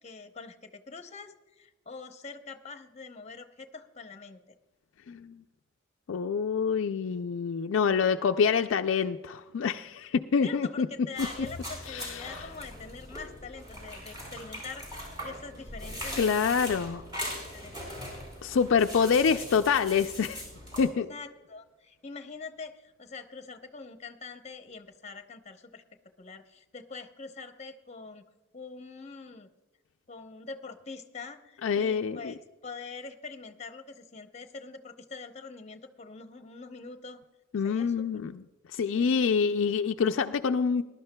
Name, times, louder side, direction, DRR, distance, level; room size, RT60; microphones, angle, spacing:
voice 1, 0.0-4.4 10.4-14.9 15.2-16.3 17.4-17.9 21.1-25.8 26.2-28.3 28.5-29.5 30.1-32.4 32.6-37.2 37.6-38.0 38.9-39.1, left 4 dB, 35° left, 7 dB, 0.8 m, -44 dB
voice 2, 5.1-5.4 6.1-10.9 11.2-11.3 11.9-12.4 16.2-17.0 18.4-20.4 20.8-21.1 31.6-32.3 37.5-38.4 38.7-40.8, left 6 dB, 70° left, 6 dB, 0.4 m, -26 dB
sound 1, 11.2-20.8, equal, 20° right, 4.2 m, -40 dB
20.5 x 11.5 x 2.2 m, 1.1 s
head